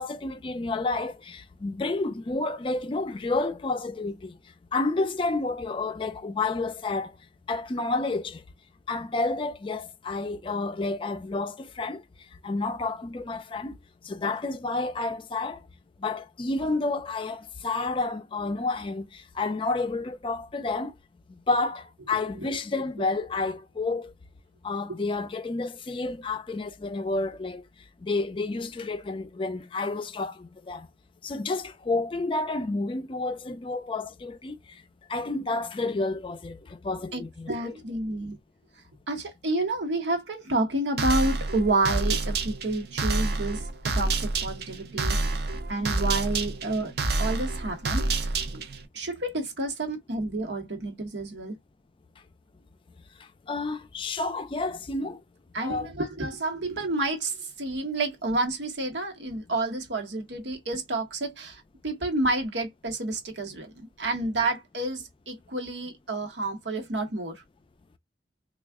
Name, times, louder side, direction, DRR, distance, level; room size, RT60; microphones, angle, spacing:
voice 1, 0.0-4.3 4.7-7.1 7.5-8.4 8.9-12.0 12.4-13.8 14.0-15.6 16.0-20.9 21.3-24.1 24.6-27.6 28.0-30.9 31.2-34.6 35.1-37.7 45.9-46.0 53.5-55.2 55.6-55.9, left 3 dB, 30° left, 0.4 m, -30 dB
voice 2, 37.1-38.4 39.1-43.7 43.9-45.2 45.7-46.9 47.2-48.6 48.9-51.6 55.5-67.4, right 2 dB, 90° right, 1.1 m, -30 dB
sound 1, 41.0-48.9, right 3 dB, 65° right, 0.6 m, -28 dB
3.4 x 2.4 x 3.5 m
head